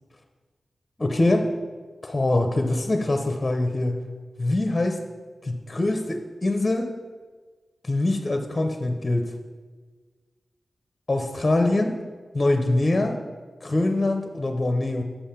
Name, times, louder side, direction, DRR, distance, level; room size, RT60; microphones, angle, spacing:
voice 1, 1.0-1.5 2.0-4.0 4.4-5.0 5.4-6.9 7.8-9.3 11.1-11.9 12.3-13.2 13.6-15.0, left 2 dB, 25° left, 5 dB, 0.7 m, -23 dB
7.1 x 5.5 x 5.7 m, 1.4 s
wide cardioid pair, 115°, 0 cm